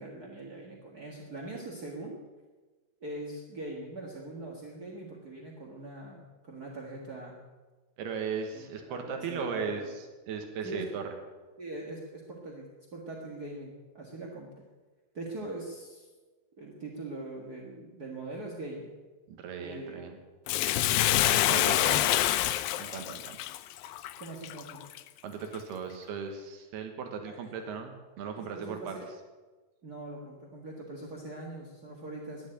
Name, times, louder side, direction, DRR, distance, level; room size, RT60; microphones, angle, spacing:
voice 1, 0.0-2.2 3.0-7.4 8.5-9.9 10.6-10.9 11.6-14.6 15.1-16.1 16.6-19.0 19.6-20.1 21.5-22.1 24.2-24.8 27.2-27.5 28.4-29.1 29.8-32.5, right 2 dB, 45° right, -1 dB, 1.2 m, -42 dB
voice 2, 8.0-9.8 10.3-11.0 19.3-20.2 21.3-22.0 22.8-23.4 25.2-29.0, right 6 dB, 85° right, 5 dB, 3.4 m, -37 dB
Bathtub (filling or washing), 20.5-25.0 25.5-25.6, left 14 dB, 80° left, 2.2 m, -26 dB
12.5 x 10.5 x 10.0 m, 1.3 s
omnidirectional pair, 4.5 m